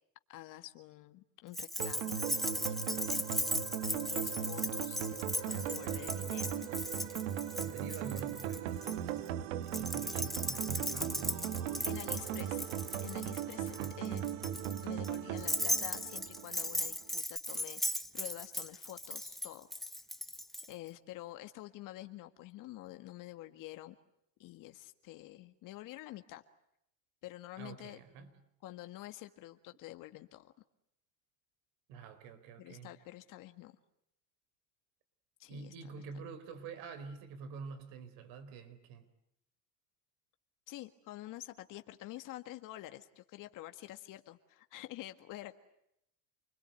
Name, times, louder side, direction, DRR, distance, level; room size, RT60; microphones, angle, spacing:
voice 1, 0.3-3.2 3.9-6.7 11.8-12.7 13.0-14.2 14.8-19.7 20.7-24.0 24.4-26.4 27.2-28.0 28.6-30.5 32.6-33.7 35.4-35.7 40.7-45.6, left 16 dB, 55° left, 8 dB, 1.7 m, -48 dB
Keys jangling, 1.5-9.0 9.7-20.7, equal, ahead, 1.1 m, -37 dB
sound 1, 1.8-16.9, right 10 dB, 90° right, 1.6 m, -38 dB
voice 2, 7.6-12.4 13.7-13.9 27.6-28.3 31.9-33.0 35.5-39.1, right 5 dB, 65° right, 12 dB, 4.2 m, -48 dB
29.0 x 21.5 x 9.3 m, 0.77 s
supercardioid pair, 110°, 37 cm